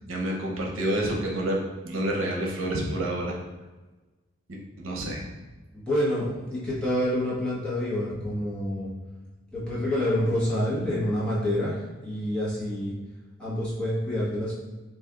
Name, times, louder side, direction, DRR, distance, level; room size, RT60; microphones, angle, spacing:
voice 1, 0.1-1.6 1.8-3.4 4.5-5.2, right 1 dB, 85° right, -1 dB, 0.7 m, -28 dB
voice 2, 5.7-8.9 9.5-12.9 13.4-14.6, left 1 dB, 5° left, -9 dB, 1.2 m, -27 dB
3.1 x 2.5 x 3.6 m, 1.2 s
head